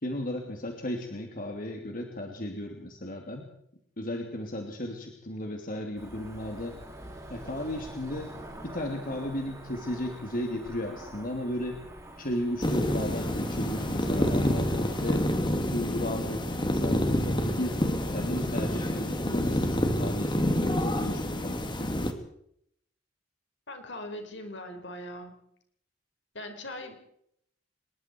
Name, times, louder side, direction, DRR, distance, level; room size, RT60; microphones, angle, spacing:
voice 1, 0.0-3.5 4.0-6.8 7.3-8.3 8.6-11.8 12.2-15.3 15.7-17.8 18.1-22.1, left 1 dB, 50° left, 3 dB, 3.0 m, -35 dB
Cricket / Motor vehicle (road), 6.0-15.3, right 1 dB, 15° right, 5.9 m, -46 dB
sound 1, 12.6-22.1, equal, 25° left, 2.6 m, -28 dB
voice 2, 23.7-25.4 26.3-27.0, left 1 dB, 70° left, 5 dB, 5.1 m, -40 dB
26.0 x 21.5 x 4.7 m, 0.71 s
head